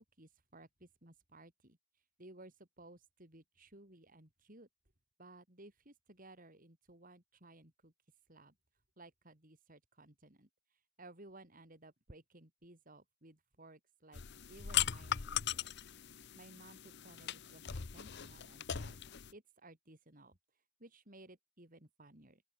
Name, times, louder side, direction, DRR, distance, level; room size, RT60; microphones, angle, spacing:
voice 1, 0.0-4.7 5.2-8.5 9.0-15.8 16.0-19.0 19.3-22.4, right 2 dB, 40° right, 3.9 m, -58 dB
sound 1, 14.1-19.3, left 10 dB, 55° left, 0.8 m, -39 dB
open air
head